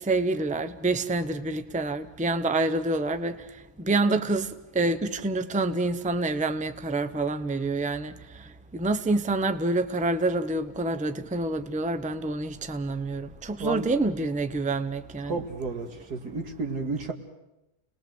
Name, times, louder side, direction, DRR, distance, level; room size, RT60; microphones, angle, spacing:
voice 1, 0.0-15.5, right 2 dB, 5° right, 0.7 m, -27 dB
voice 2, 15.3-17.1, right 3 dB, 90° right, 2.7 m, -32 dB
30.0 x 20.5 x 7.8 m
omnidirectional pair, 1.7 m